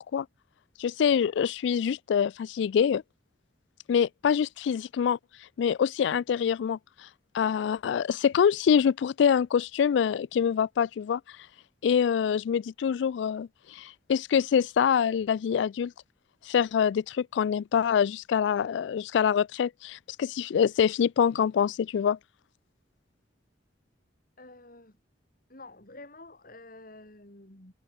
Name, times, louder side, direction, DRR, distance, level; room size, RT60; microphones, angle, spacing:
voice 1, 0.8-3.0 3.9-5.2 5.6-6.8 7.3-11.2 11.8-15.9 16.4-22.2, left 7 dB, 75° left, 0.3 m, -25 dB
voice 2, 24.4-25.0 25.5-27.7, left 2 dB, 50° left, 5.7 m, -49 dB
head